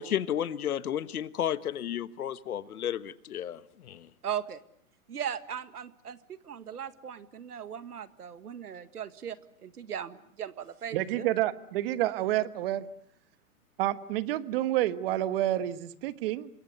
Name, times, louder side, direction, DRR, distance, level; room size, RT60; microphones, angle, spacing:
voice 1, 0.0-4.1, left 10 dB, 75° left, 1.5 m, -32 dB
voice 2, 4.2-4.6 5.1-9.4 9.6-11.3, right 9 dB, 90° right, 1.9 m, -38 dB
voice 3, 10.9-12.8 13.8-16.5, right 14 dB, 40° right, 1.3 m, -29 dB
28.0 x 22.5 x 8.1 m
hypercardioid pair, 145°, 44 cm